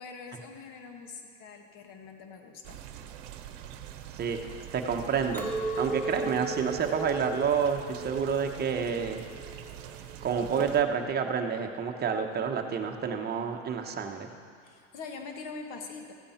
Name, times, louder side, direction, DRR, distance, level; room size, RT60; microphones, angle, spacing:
voice 1, 0.0-2.8 14.6-16.1, left 4 dB, 50° left, 4 dB, 1.7 m, -43 dB
sound 1, 2.6-10.8, right 10 dB, 70° right, 1.0 m, -44 dB
voice 2, 4.7-5.5 5.8-9.2 10.2-14.3, right 6 dB, 25° right, 4 dB, 1.0 m, -29 dB
Chink clink, 5.3-10.7, right 2 dB, 5° left, 1.2 m, -37 dB
15.0 x 8.6 x 4.3 m, 2.1 s
supercardioid pair, 115°, 38 cm